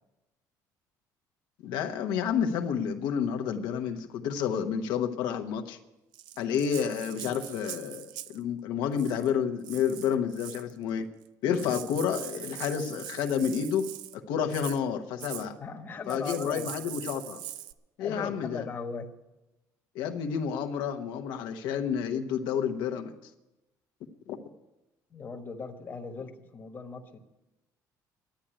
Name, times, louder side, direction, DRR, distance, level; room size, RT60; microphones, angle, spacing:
voice 1, 1.6-5.8 6.4-11.1 11.4-15.6 16.1-17.4 18.0-18.7 19.9-23.1 24.3-24.4, left 7 dB, 85° left, 6 dB, 1.0 m, -30 dB
Rattle (instrument), 6.1-8.4 8.9-9.3 9.6-10.7 11.2-11.3 11.5-14.2 14.5-14.8 15.2-15.5 16.1-17.7, right 13 dB, 90° right, 0.5 m, -42 dB
voice 2, 15.6-16.7 18.0-19.1 25.1-27.2, left 5 dB, 25° left, 4 dB, 1.2 m, -38 dB
11.5 x 8.9 x 9.9 m, 1.0 s
cardioid pair, 160°, 7 cm